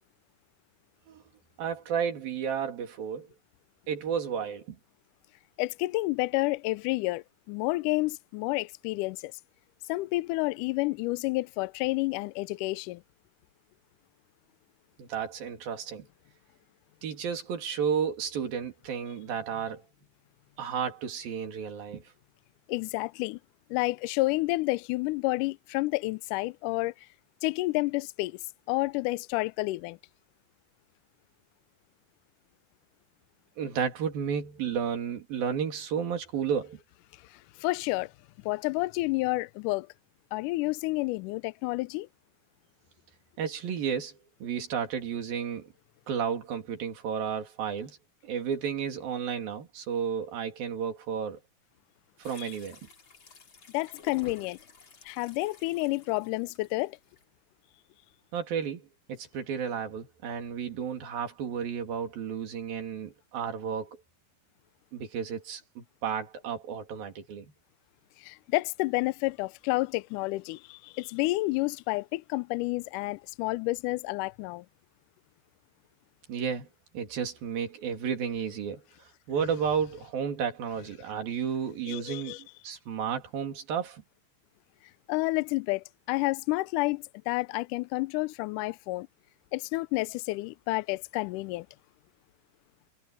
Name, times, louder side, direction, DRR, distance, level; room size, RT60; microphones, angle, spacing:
voice 1, 1.6-3.3 3.9-4.8 15.0-16.1 17.0-19.8 20.6-22.0 33.6-36.8 43.4-45.7 46.1-48.0 48.2-51.4 52.2-52.8 58.3-64.0 64.9-67.5 76.3-76.7 76.9-78.8 79.3-84.0, right 7 dB, 80° right, 4.6 m, -32 dB
voice 2, 5.6-9.3 9.9-13.0 22.7-23.4 23.7-26.9 27.4-28.4 28.7-30.0 37.6-38.1 38.5-39.9 40.3-42.1 52.4-52.5 53.7-54.6 55.1-57.0 68.2-74.7 81.9-82.4 85.1-89.1 89.5-91.7, left 21 dB, 80° left, 1.9 m, -30 dB
sound 1, 52.2-57.2, left 7 dB, 35° left, 3.1 m, -50 dB
omnidirectional pair, 4.1 m